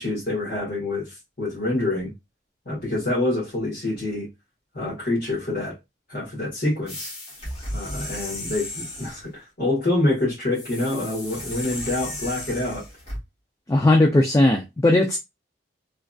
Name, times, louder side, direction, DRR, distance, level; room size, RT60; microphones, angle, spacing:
voice 1, 0.0-2.1 2.6-4.3 4.7-5.7 6.1-7.1 7.7-12.8, left 2 dB, 50° left, 1.6 m, -26 dB
sound 1, 6.9-9.3 10.5-13.2, left 1 dB, 30° left, 1.2 m, -35 dB
voice 2, 13.7-15.2, left 1 dB, 15° left, 0.3 m, -18 dB
3.3 x 2.5 x 2.3 m
head